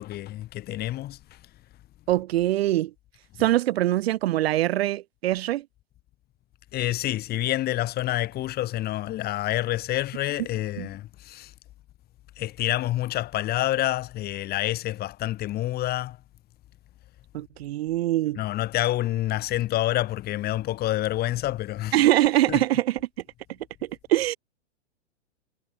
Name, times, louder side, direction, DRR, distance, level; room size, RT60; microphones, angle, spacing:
voice 1, 0.0-1.4 3.4-3.5 6.7-11.5 12.4-16.2 18.4-22.0 22.5-22.6, left 14 dB, 25° left, 5.5 m, -28 dB
voice 2, 2.1-2.9 3.4-5.6 10.8-10.9 17.3-18.4 21.9-23.0 24.1-24.4, right 15 dB, 55° right, 1.1 m, -23 dB
hypercardioid pair, 145°, 36 cm